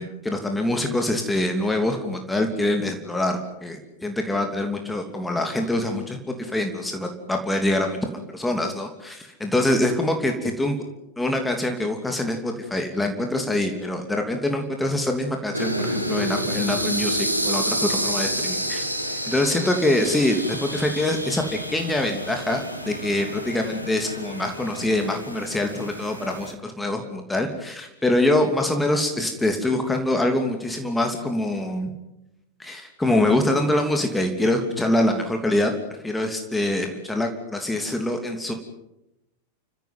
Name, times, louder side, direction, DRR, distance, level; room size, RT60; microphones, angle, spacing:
voice 1, 0.0-8.0 8.3-10.8 11.2-31.9 32.6-38.5, left 1 dB, 5° left, 4 dB, 2.9 m, -24 dB
sound 1, 15.5-26.5, equal, 90° right, 2.3 m, -29 dB
30.0 x 16.0 x 9.5 m, 0.89 s
figure-of-eight pair, 90°, 0 cm